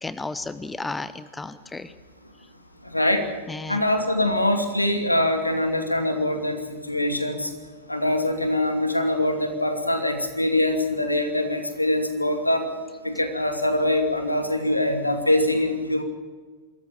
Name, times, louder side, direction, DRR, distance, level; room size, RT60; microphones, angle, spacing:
voice 1, 0.0-1.9 3.5-3.8, left 3 dB, 10° left, 15 dB, 0.8 m, -33 dB
voice 2, 2.8-3.2 3.7-7.5 7.9-12.7 13.0-16.0, left 1 dB, 85° left, 5 dB, 2.6 m, -23 dB
25.0 x 14.0 x 8.9 m, 1.4 s
figure-of-eight pair, 90°, 0 cm